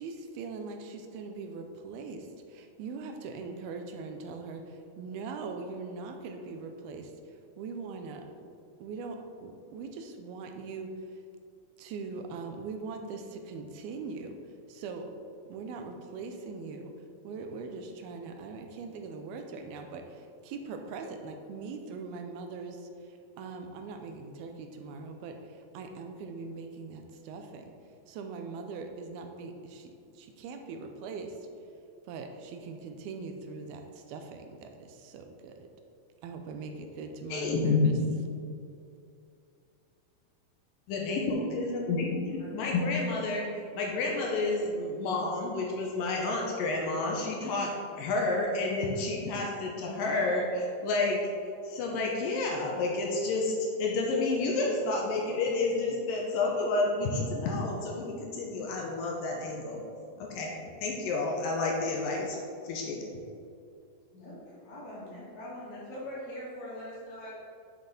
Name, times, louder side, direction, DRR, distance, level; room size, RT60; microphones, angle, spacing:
voice 1, 0.0-8.2 8.8-11.2 11.8-14.4 14.7-15.1 15.5-16.9 17.2-27.7 28.1-31.5 32.1-35.7 36.2-38.0, right 4 dB, 85° right, 5 dB, 2.6 m, -41 dB
voice 2, 37.3-38.0 40.9-43.5 43.7-47.7 48.0-51.2 51.6-59.8 60.2-60.5 60.8-62.4 62.6-63.1, left 3 dB, 75° left, -1 dB, 2.4 m, -30 dB
voice 3, 64.1-67.3, left 1 dB, 55° left, -7 dB, 3.3 m, -42 dB
8.1 x 6.4 x 4.2 m, 2.5 s
omnidirectional pair, 4.3 m